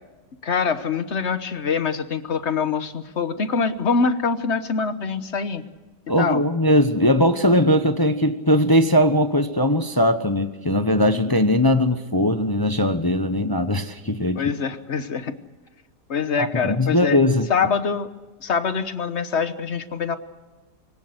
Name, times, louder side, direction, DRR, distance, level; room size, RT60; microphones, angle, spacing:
voice 1, 0.4-5.6 6.2-6.4 14.3-15.4 16.1-17.2 17.5-18.1 18.4-20.2, left 5 dB, 45° left, 11 dB, 1.3 m, -24 dB
voice 2, 6.1-14.4 16.4-17.5, left 1 dB, 20° left, 9 dB, 0.7 m, -20 dB
24.5 x 17.0 x 8.0 m, 1.2 s
omnidirectional pair, 1.8 m